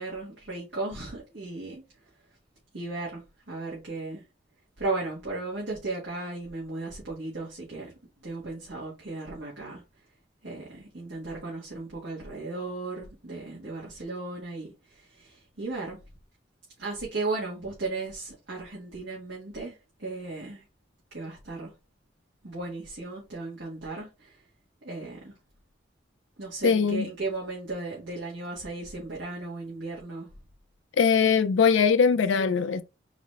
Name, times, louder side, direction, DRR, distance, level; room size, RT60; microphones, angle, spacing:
voice 1, 0.0-1.8 2.7-4.2 4.8-7.9 8.2-9.8 10.4-16.0 16.8-20.6 21.1-21.7 22.4-24.4 24.8-25.4 26.4-30.3, right 3 dB, 70° right, 1.7 m, -35 dB
voice 2, 26.6-27.1 31.0-32.8, left 6 dB, 90° left, 0.4 m, -21 dB
4.1 x 4.0 x 3.1 m
head